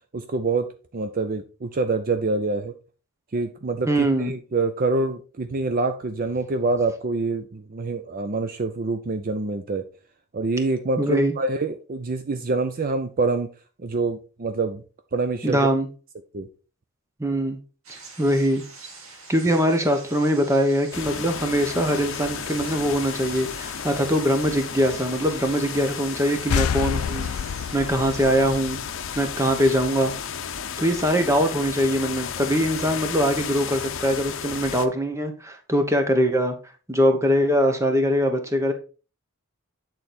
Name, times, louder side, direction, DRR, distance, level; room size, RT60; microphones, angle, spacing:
voice 1, 0.1-2.7 3.3-9.9 10.3-13.5 13.8-14.8 15.1-15.6 16.3-16.5, right 3 dB, 40° right, 8 dB, 0.5 m, -26 dB
voice 2, 3.9-4.3 11.0-11.3 15.4-15.9 17.2-17.6 17.9-18.6 19.3-27.3 27.7-28.8 29.1-30.1 30.8-36.5 36.9-38.7, equal, 15° right, 5 dB, 1.0 m, -22 dB
sound 1, 17.8-28.4, right 4 dB, 75° right, 1.8 m, -45 dB
sound 2, 20.9-34.9, left 7 dB, 65° left, 0.7 m, -33 dB
sound 3, 26.5-30.0, left 7 dB, 90° left, 0.4 m, -29 dB
8.5 x 4.0 x 4.3 m, 0.35 s
head